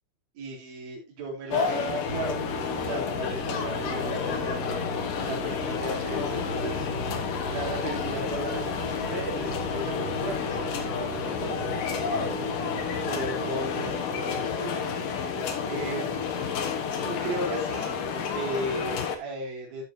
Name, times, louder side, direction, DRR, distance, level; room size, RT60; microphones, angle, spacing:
voice 1, 0.4-4.9 5.2-6.8 7.5-12.4 13.1-14.7 15.7-16.6 17.0-18.0 18.3-19.8, right 2 dB, 50° right, -3 dB, 5.6 m, -36 dB
sound 1, 1.5-19.2, left 6 dB, 60° left, 2.4 m, -30 dB
sound 2, 2.1-18.0, right 3 dB, 75° right, 6.2 m, -40 dB
14.0 x 7.4 x 2.8 m, 0.23 s
omnidirectional pair, 5.7 m